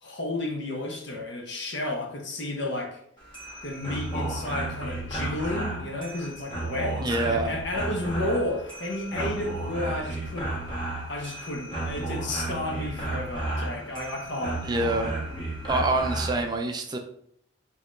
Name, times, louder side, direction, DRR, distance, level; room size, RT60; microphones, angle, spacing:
voice 1, 0.0-3.0 3.6-10.6 11.1-14.7, left 1 dB, 60° left, 1 dB, 0.9 m, -32 dB
sound 1, 3.2-16.5, right 2 dB, 25° left, 1.2 m, -33 dB
voice 2, 7.0-7.5 14.6-15.2 15.6-17.0, right 2 dB, 20° right, 4 dB, 0.3 m, -26 dB
6.1 x 2.9 x 2.5 m, 0.69 s
head